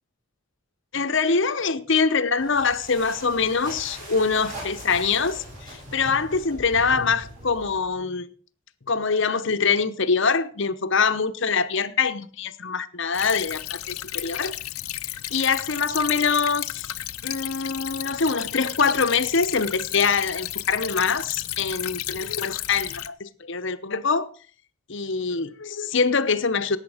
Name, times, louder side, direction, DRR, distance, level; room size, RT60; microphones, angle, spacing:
voice 1, 0.9-8.3 8.9-14.5 15.3-16.9 17.2-24.3 24.9-26.8, left 5 dB, 55° left, 0.9 m, -24 dB
sound 1, 2.4-7.9, right 1 dB, 35° right, 7.8 m, -40 dB
Stream / Trickle dribble, 13.1-23.1, left 14 dB, 85° left, 0.7 m, -33 dB
17.5 x 8.2 x 5.0 m
head